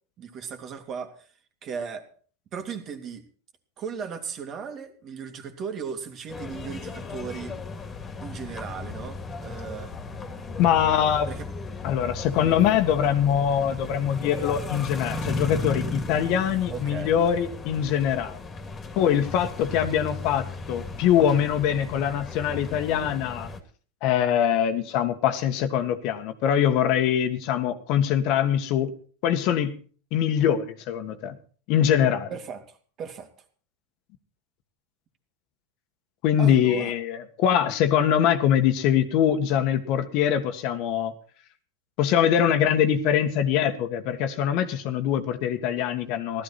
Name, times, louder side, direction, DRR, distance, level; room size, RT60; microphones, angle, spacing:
voice 1, 0.2-1.3 1.6-2.1 2.5-3.2 3.8-7.6 8.2-9.9 11.3-11.5 12.4-12.6 16.7-17.1 32.3-33.3 36.4-37.0, right 6 dB, 35° right, 6 dB, 2.5 m, -36 dB
sound 1, 6.3-23.6, left 3 dB, 25° left, 2.3 m, -35 dB
voice 2, 10.6-11.3 11.8-18.4 18.9-23.5 24.0-28.9 29.2-29.7 30.1-31.4 31.7-32.3 36.2-41.1 42.0-46.4, left 9 dB, 55° left, 8 dB, 1.6 m, -23 dB
16.0 x 13.0 x 4.2 m, 0.43 s
hypercardioid pair, 110°, 0 cm